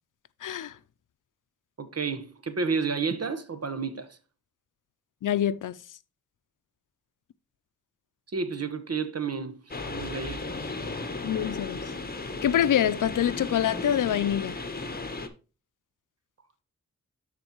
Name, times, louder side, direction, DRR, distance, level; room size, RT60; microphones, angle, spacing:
voice 1, 0.4-0.8 5.2-5.8 11.2-11.8 12.4-14.6, left 10 dB, 85° left, 0.5 m, -25 dB
voice 2, 1.8-4.2 8.3-10.7, right 5 dB, 55° right, 1.2 m, -31 dB
sound 1, 9.7-15.3, left 3 dB, 30° left, 1.3 m, -35 dB
12.5 x 4.4 x 3.0 m
cardioid pair, 65°, 31 cm